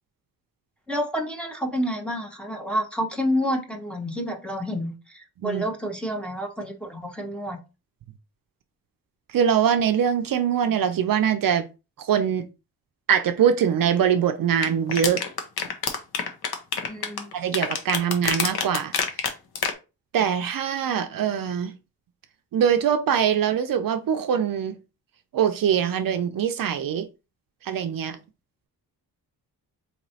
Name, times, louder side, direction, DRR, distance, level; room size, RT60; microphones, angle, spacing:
voice 1, 0.9-7.6 16.8-17.3, equal, 5° left, 0.8 m, -29 dB
voice 2, 9.3-11.7 12.0-12.5 13.1-15.2 17.3-18.9 20.1-21.7 22.5-24.7 25.3-27.1 27.6-28.2, right 8 dB, 60° right, 0.5 m, -23 dB
sound 1, 14.6-19.7, left 6 dB, 75° left, 0.8 m, -26 dB
4.2 x 3.0 x 2.7 m
wide cardioid pair, 120°, 38 cm